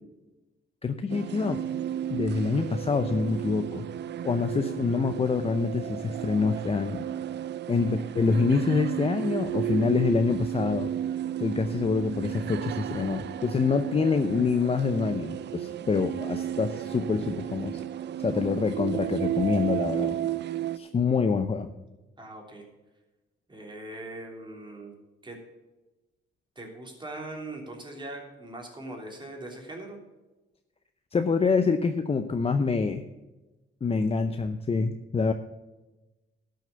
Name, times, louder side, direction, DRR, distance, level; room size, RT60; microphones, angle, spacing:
voice 1, 0.8-1.6 2.1-3.9 4.2-7.1 7.7-10.9 11.4-17.8 18.2-20.2 20.7-21.7 31.1-33.0 33.8-35.3, left 5 dB, 30° left, 8 dB, 0.7 m, -26 dB
sound 1, 1.1-20.8, right 11 dB, 60° right, 0.6 m, -33 dB
voice 2, 22.2-22.7 23.5-24.9 25.2-25.4 26.5-30.0, right 2 dB, 25° right, 1 dB, 3.2 m, -41 dB
12.0 x 6.5 x 6.9 m, 1.1 s
cardioid pair, 90°, 20 cm